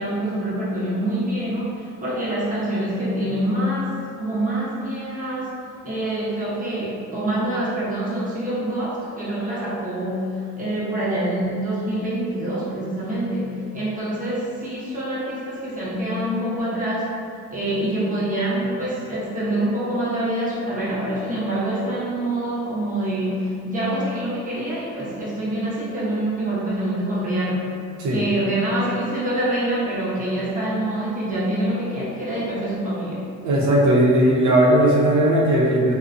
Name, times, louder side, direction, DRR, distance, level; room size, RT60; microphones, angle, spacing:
voice 1, 0.0-5.5 5.8-17.2 17.5-27.7 28.1-33.3, right 1 dB, 25° right, -8 dB, 0.8 m, -25 dB
voice 2, 33.4-35.9, right 1 dB, 70° right, -4 dB, 0.6 m, -17 dB
2.4 x 2.1 x 2.5 m, 2.3 s
cardioid pair, 90°, 30 cm